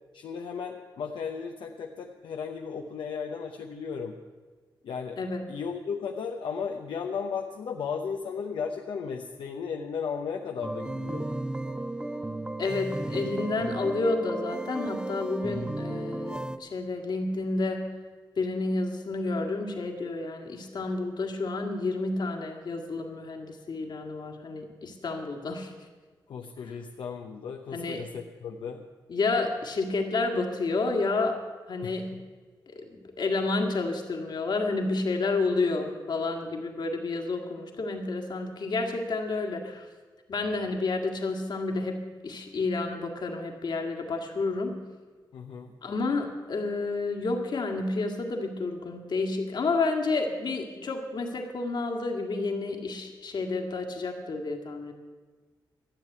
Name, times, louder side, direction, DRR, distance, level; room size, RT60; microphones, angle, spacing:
voice 1, 0.1-4.2 4.8-5.2 5.5-11.3 26.3-28.8 31.8-32.2 45.3-45.7, left 6 dB, 90° left, 2 dB, 0.8 m, -35 dB
sound 1, 10.6-16.6, right 1 dB, 10° right, 0.6 m, -34 dB
voice 2, 12.6-17.9 18.4-25.7 27.7-28.0 29.1-31.4 31.7-32.2 32.7-32.9 33.2-39.9 40.3-44.8 45.8-54.9, left 3 dB, 65° left, 3 dB, 2.1 m, -30 dB
13.0 x 7.5 x 9.2 m, 1.4 s
cardioid pair, 85°, 8 cm